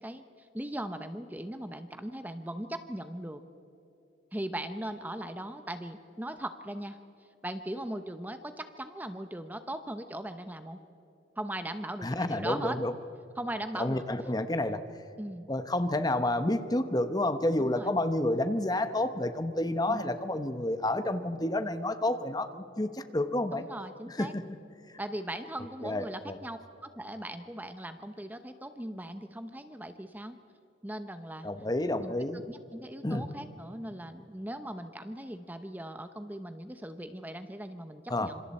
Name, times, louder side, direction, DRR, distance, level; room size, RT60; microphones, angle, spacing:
voice 1, 0.0-3.4 4.3-7.0 7.4-10.8 11.4-12.8 13.4-14.0 15.2-15.5 17.6-17.9 19.9-20.1 23.5-24.3 25.0-30.4 30.8-31.5 32.0-38.4, right 1 dB, 10° right, 9 dB, 0.8 m, -39 dB
voice 2, 12.0-12.9 13.8-14.8 15.5-23.6 24.1-24.4 25.8-26.4 31.4-32.4 33.0-33.3 38.1-38.3, left 1 dB, 20° left, 10 dB, 0.9 m, -30 dB
26.5 x 26.5 x 4.3 m, 3.0 s
head